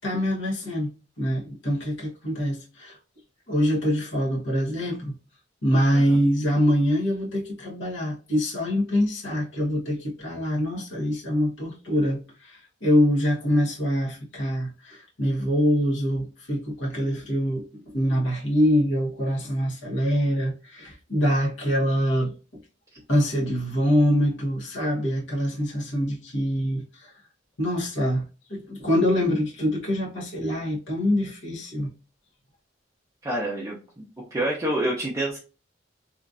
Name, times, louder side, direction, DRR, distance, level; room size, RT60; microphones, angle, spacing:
voice 1, 0.0-0.9 1.2-2.9 3.5-5.1 5.6-22.3 23.1-26.8 27.6-31.9, equal, 75° left, 1.1 m, -24 dB
voice 2, 33.2-34.0 34.3-35.4, right 1 dB, 15° right, 0.5 m, -27 dB
3.0 x 2.4 x 2.4 m
head